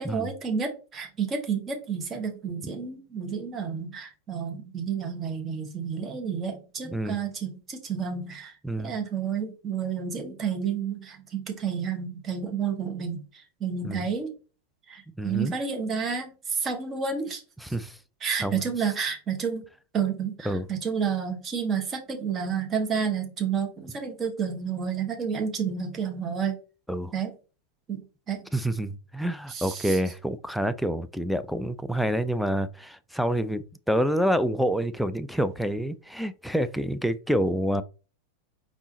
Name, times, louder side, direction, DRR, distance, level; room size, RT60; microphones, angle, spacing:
voice 1, 0.0-8.6 8.8-14.3 14.9-17.4 18.2-19.6 19.9-26.6 27.1-27.3 27.9-28.4 29.5-30.0, right 6 dB, 25° right, 1.2 m, -30 dB
voice 2, 6.8-7.2 8.6-8.9 13.8-14.0 15.1-15.5 17.6-18.0 18.4-18.6 20.5-20.7 26.9-27.1 28.5-37.8, equal, ahead, 0.4 m, -27 dB
4.9 x 3.6 x 2.8 m
figure-of-eight pair, 90°, 0 cm